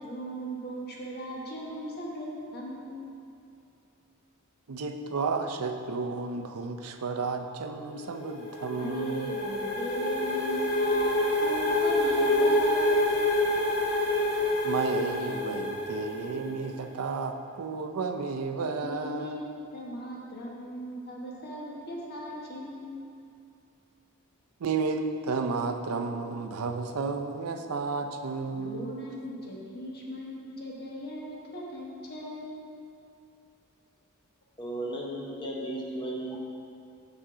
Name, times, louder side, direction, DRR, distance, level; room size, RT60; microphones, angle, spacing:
voice 1, 0.0-2.9 8.7-12.9 18.8-19.4 19.7-22.9 28.6-32.6, equal, 45° left, -3 dB, 1.2 m, -38 dB
voice 2, 4.7-9.3 14.6-19.4 24.6-28.9, right 4 dB, 70° right, 6 dB, 0.5 m, -32 dB
sound 1, 8.0-16.7, left 1 dB, 85° left, 1.7 m, -27 dB
voice 3, 34.6-36.4, right 1 dB, 20° left, -2 dB, 0.7 m, -35 dB
7.5 x 5.6 x 3.7 m, 2.6 s
head